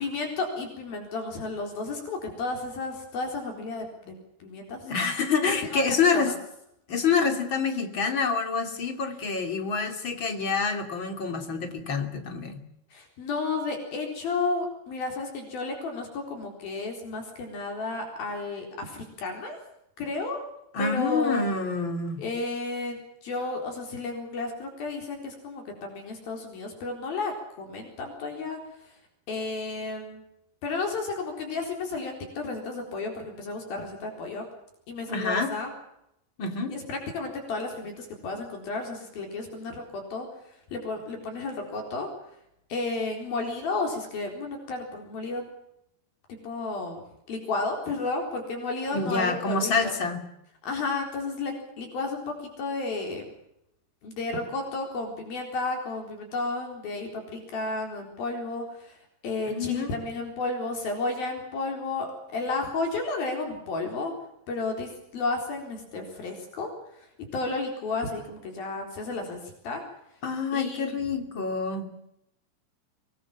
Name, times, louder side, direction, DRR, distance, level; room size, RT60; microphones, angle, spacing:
voice 1, 0.0-4.2 4.4-4.9 5.5-5.8 6.1-6.4 12.9-19.6 20.0-20.4 20.8-21.4 22.2-29.0 29.3-30.2 30.6-34.5 34.9-35.7 36.7-42.1 42.7-45.5 46.3-50.0 50.6-53.3 54.0-64.2 64.5-69.8 70.1-70.2 70.5-71.0, left 3 dB, 65° left, 3 dB, 5.8 m, -32 dB
voice 2, 4.8-6.3 6.9-12.6 20.7-22.2 35.1-35.5 36.4-36.7 48.9-50.2 59.5-59.9 70.2-72.0, left 5 dB, 35° left, 6 dB, 3.1 m, -27 dB
25.5 x 20.5 x 7.3 m, 0.80 s
omnidirectional pair, 4.6 m